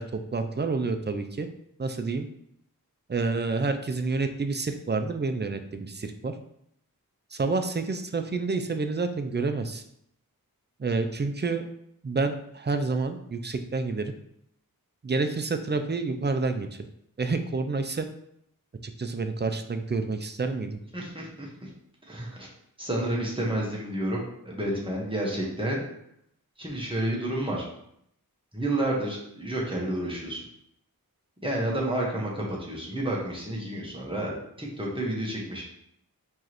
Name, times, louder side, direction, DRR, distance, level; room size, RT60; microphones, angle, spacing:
voice 1, 0.0-1.5 1.8-2.3 3.1-6.3 7.3-9.8 10.8-11.7 12.0-14.1 15.0-16.7 17.2-18.1 18.8-20.8, right 3 dB, 30° right, 7 dB, 0.4 m, -28 dB
voice 2, 20.9-21.7 22.1-22.5 22.8-25.9 26.6-27.7 28.5-30.4 31.4-35.6, right 1 dB, 15° right, -4 dB, 1.3 m, -30 dB
4.6 x 3.1 x 3.0 m, 0.74 s
wide cardioid pair, 50°, 37 cm